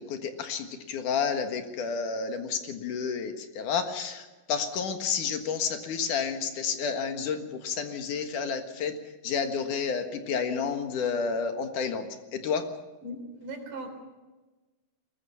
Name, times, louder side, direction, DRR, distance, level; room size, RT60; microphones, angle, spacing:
voice 1, 0.0-9.0 9.2-12.1 12.3-12.7, left 6 dB, 75° left, 6 dB, 3.1 m, -30 dB
voice 2, 13.0-13.9, right 1 dB, 80° right, 4 dB, 5.3 m, -39 dB
22.5 x 20.5 x 5.8 m, 1.2 s
omnidirectional pair, 3.7 m